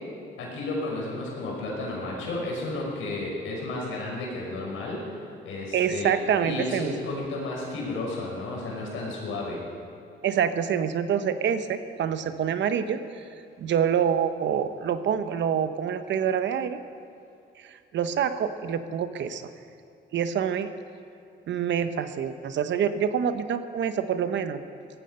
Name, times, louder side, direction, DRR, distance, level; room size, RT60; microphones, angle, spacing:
voice 1, 0.4-5.2 5.4-6.1 6.4-9.6, left 2 dB, 85° left, -2 dB, 5.3 m, -32 dB
voice 2, 5.7-6.9 10.2-13.2 13.6-16.8 17.6-19.5 20.1-20.7 21.5-24.6, right 8 dB, 65° right, 10 dB, 1.0 m, -26 dB
18.0 x 14.5 x 5.6 m, 2.4 s
cardioid pair, 90°, 20 cm